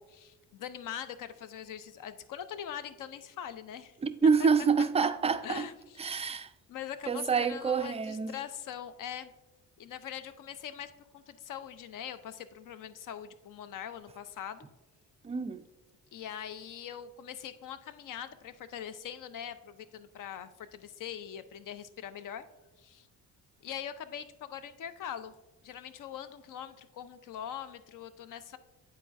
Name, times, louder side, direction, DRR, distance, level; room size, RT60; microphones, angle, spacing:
voice 1, 0.0-3.9 4.8-5.1 5.4-6.4 6.7-9.3 9.8-14.7 16.1-22.4 22.8-23.1 23.6-25.3 25.6-28.6, left 9 dB, 50° left, 0.6 m, -42 dB
voice 2, 4.0-5.6 6.0-6.5 7.1-8.4 15.2-15.6, right 5 dB, 15° right, 0.3 m, -27 dB
9.7 x 4.1 x 2.5 m
hypercardioid pair, 50°, 41 cm